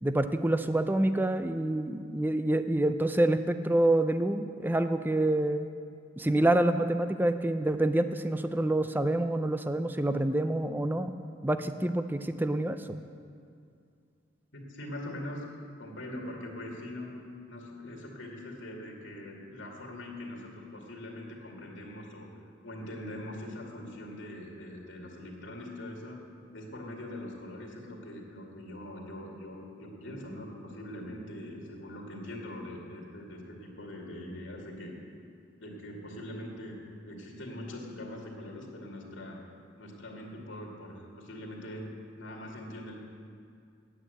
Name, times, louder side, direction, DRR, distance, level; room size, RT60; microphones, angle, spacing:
voice 1, 0.0-5.7 6.2-11.1 11.4-13.0, right 1 dB, 10° right, 9 dB, 0.4 m, -27 dB
voice 2, 14.5-15.4 15.8-17.1 17.5-22.3 22.6-26.2 26.5-34.9 35.6-36.8 37.0-39.4 39.8-41.9 42.2-42.9, left 1 dB, 85° left, -1 dB, 2.3 m, -42 dB
9.9 x 9.1 x 8.0 m, 2.3 s
head